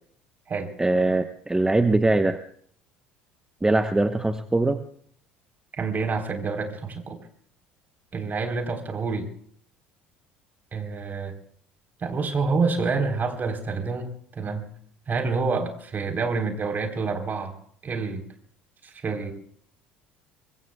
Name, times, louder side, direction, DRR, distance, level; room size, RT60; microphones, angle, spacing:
voice 1, 0.8-2.4 3.6-4.8, right 2 dB, 10° right, 9 dB, 1.2 m, -22 dB
voice 2, 5.8-7.2 8.1-9.3 10.7-11.3 12.0-14.7 15.1-17.5 17.8-18.3 18.8-19.3, right 4 dB, 35° right, 4 dB, 4.0 m, -27 dB
25.0 x 23.5 x 2.4 m, 0.63 s
hypercardioid pair, 60°, 6 cm